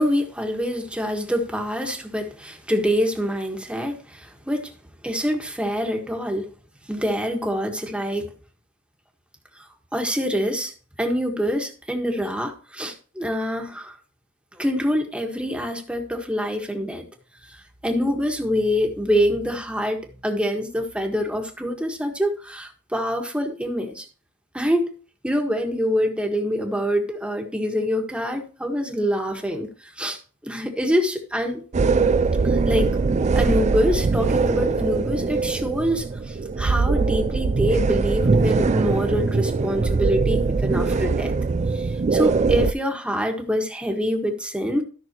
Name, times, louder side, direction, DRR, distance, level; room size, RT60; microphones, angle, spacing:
voice 1, 0.0-4.7 5.0-6.5 6.9-8.3 9.9-10.7 11.0-14.0 14.5-17.0 17.5-24.1 24.5-24.9 25.2-30.2 30.4-31.6 32.4-33.0 33.3-41.3 41.7-44.8, equal, 5° right, 1.6 m, -25 dB
sound 1, 31.7-42.7, right 4 dB, 35° right, 0.4 m, -21 dB
14.0 x 6.1 x 3.0 m
head